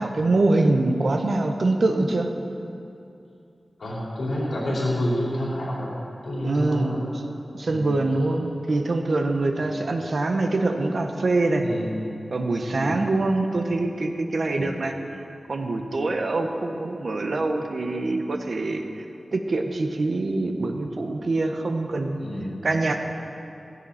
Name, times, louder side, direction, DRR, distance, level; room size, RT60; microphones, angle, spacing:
voice 1, 0.0-2.3 6.4-7.0 7.5-11.6 12.3-14.9 15.5-19.0 19.3-22.2 22.6-23.0, right 2 dB, 65° right, 4 dB, 1.3 m, -24 dB
voice 2, 3.8-5.9 6.2-7.0 7.7-7.9 11.6-11.8 12.8-13.0 14.5-14.7 22.2-22.5, left 1 dB, 90° left, -7 dB, 4.7 m, -28 dB
16.5 x 15.5 x 4.4 m, 2.6 s
wide cardioid pair, 95°, 0 cm